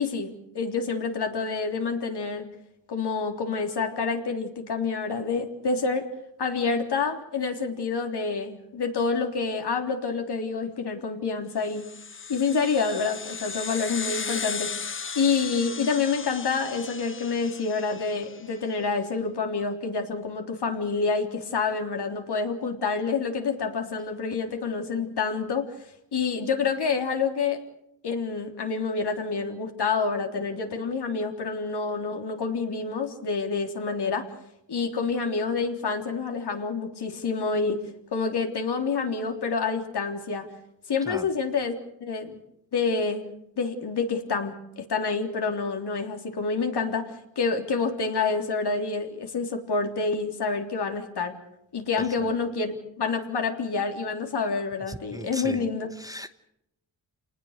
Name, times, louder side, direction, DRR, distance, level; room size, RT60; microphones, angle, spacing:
voice 1, 0.0-2.5 2.9-6.1 6.4-11.9 12.3-14.7 15.2-25.8 26.1-27.6 28.0-34.3 34.7-37.8 38.1-40.5 40.9-42.4 42.7-43.3 43.6-51.3 51.7-55.9, left 4 dB, 60° left, 4 dB, 3.6 m, -28 dB
sound 1, 11.7-18.5, left 5 dB, 30° left, 0.8 m, -36 dB
voice 2, 54.9-55.6 56.0-56.4, equal, 10° right, 10 dB, 1.1 m, -37 dB
27.5 x 19.5 x 6.6 m, 0.80 s
cardioid pair, 75°, 44 cm